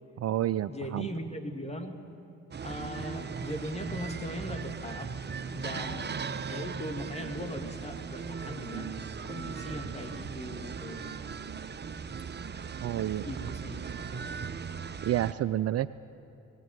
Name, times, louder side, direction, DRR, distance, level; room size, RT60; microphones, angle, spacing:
voice 1, 0.2-1.1 12.8-13.2 15.0-15.9, right 12 dB, 50° right, 15 dB, 0.5 m, -29 dB
voice 2, 0.7-2.0 2.6-5.1 5.5-6.1 6.5-9.0 9.2-11.0 13.3-13.8, left 1 dB, 20° left, 4 dB, 2.5 m, -39 dB
sound 1, 2.5-15.3, right 6 dB, 30° right, 1.0 m, -38 dB
18.5 x 17.0 x 9.3 m, 2.8 s
hypercardioid pair, 60°, 33 cm